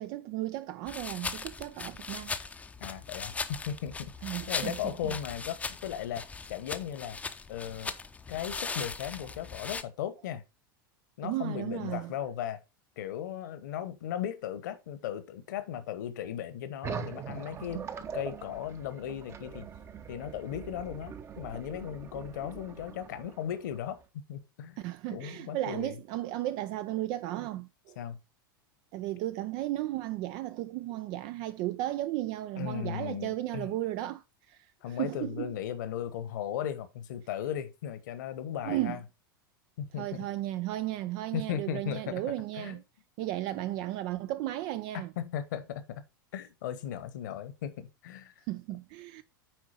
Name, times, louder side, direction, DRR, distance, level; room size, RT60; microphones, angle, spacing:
voice 1, 0.0-2.3 4.2-5.1 11.2-12.1 24.8-28.0 28.9-35.5 38.6-39.0 40.0-42.8 43.2-45.1 48.5-49.2, right 15 dB, 40° right, 0.5 m, -35 dB
sound 1, 0.9-9.8, left 4 dB, 10° left, 0.7 m, -39 dB
voice 2, 2.8-4.1 4.5-7.2 7.5-7.9 8.3-10.4 11.2-12.6 13.0-17.8 18.1-19.7 20.1-24.0 24.3-24.8 25.1-26.0 28.0-28.2 32.6-33.7 34.8-39.0 39.8-40.2 41.3-42.2 42.6-42.8 45.2-46.0 46.3-48.3, left 10 dB, 55° left, 1.3 m, -37 dB
sound 2, 16.8-24.0, right 7 dB, 20° right, 0.8 m, -42 dB
9.3 x 4.6 x 4.2 m
figure-of-eight pair, 90°, 12 cm